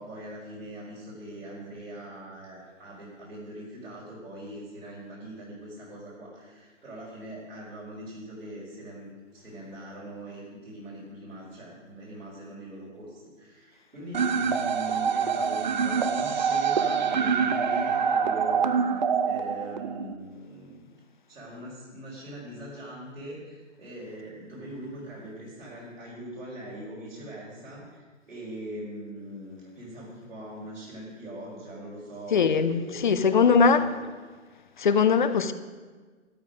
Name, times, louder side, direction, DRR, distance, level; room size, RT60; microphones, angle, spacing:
voice 1, 0.0-21.0 21.3-28.0 28.3-34.0, right 1 dB, 75° right, 4.9 m, -41 dB
sound 1, 14.1-20.1, right 6 dB, 35° right, 0.6 m, -25 dB
voice 2, 32.3-33.8 34.8-35.5, left 5 dB, 40° left, 0.7 m, -21 dB
13.0 x 11.0 x 5.2 m
figure-of-eight pair, 140°, 39 cm